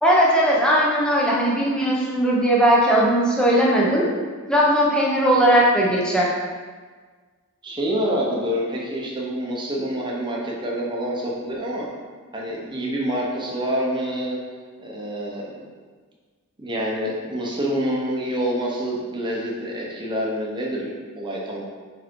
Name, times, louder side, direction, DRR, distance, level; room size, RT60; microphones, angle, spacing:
voice 1, 0.0-4.1 4.5-6.3, right 1 dB, 5° left, -5 dB, 1.0 m, -18 dB
voice 2, 7.6-11.9 12.3-14.4 14.8-15.6 16.6-21.6, equal, 20° right, -3 dB, 1.0 m, -27 dB
4.8 x 4.7 x 4.7 m, 1.5 s
head